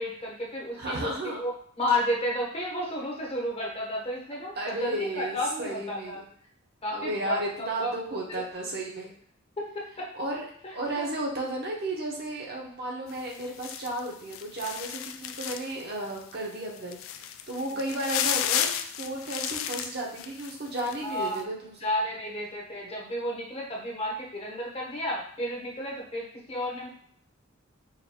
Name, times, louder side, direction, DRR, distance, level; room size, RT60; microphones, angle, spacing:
voice 1, 0.0-6.2 6.8-7.4 7.8-7.9 8.3-8.4 9.6-10.1 10.9-11.1 21.0-21.4 21.8-26.9, left 1 dB, 30° left, -2 dB, 0.9 m, -32 dB
voice 2, 0.8-1.4 4.6-6.2 6.9-9.1 10.1-10.4 10.7-17.0 17.5-18.7 18.9-21.9, right 1 dB, 50° right, -2 dB, 0.9 m, -33 dB
sound 1, 13.1-15.8 16.2-16.3 16.8-20.9 21.2-21.4, left 10 dB, 65° left, 0.3 m, -32 dB
5.0 x 2.6 x 2.9 m, 0.62 s
head